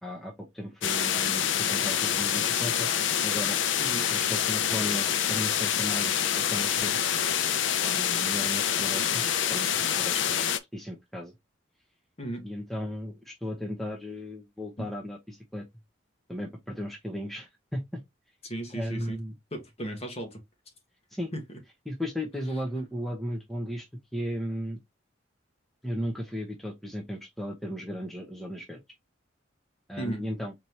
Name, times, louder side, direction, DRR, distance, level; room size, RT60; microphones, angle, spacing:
voice 1, 0.0-2.9 3.2-3.6 4.1-7.0 7.8-10.5 10.7-11.3 12.4-15.6 16.3-18.0 18.7-19.3 21.1-21.3 21.9-23.9 24.1-24.8 25.8-28.8 29.9-30.5, equal, ahead, 0.8 m, -35 dB
sound 1, 0.8-10.6, left 9 dB, 90° left, 0.5 m, -26 dB
voice 2, 3.8-4.1 12.2-12.4 14.8-14.9 18.4-19.2 19.5-20.4 21.3-21.4 30.0-30.2, right 1 dB, 35° left, 1.3 m, -35 dB
4.2 x 2.8 x 3.2 m
head